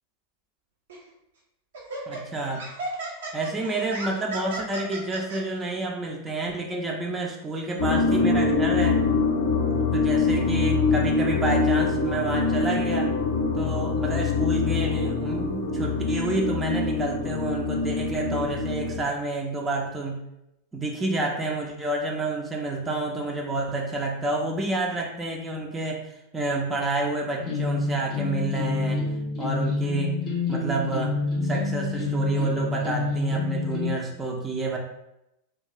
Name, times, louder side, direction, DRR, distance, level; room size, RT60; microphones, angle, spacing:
Laughter, 0.9-1.1 1.7-5.4, right 2 dB, 60° right, 0.6 m, -35 dB
voice 1, 2.1-2.6 3.3-9.0 9.9-13.1 13.5-20.2 20.7-26.0 26.3-29.1 29.4-30.2 30.5-34.8, right 2 dB, 15° right, 0 dB, 0.4 m, -29 dB
sound 1, 7.8-19.0, left 4 dB, 70° left, 0.5 m, -24 dB
sound 2, 27.4-33.9, left 3 dB, 30° left, 0.7 m, -27 dB
2.3 x 2.2 x 2.9 m, 0.86 s
figure-of-eight pair, 90°, 0 cm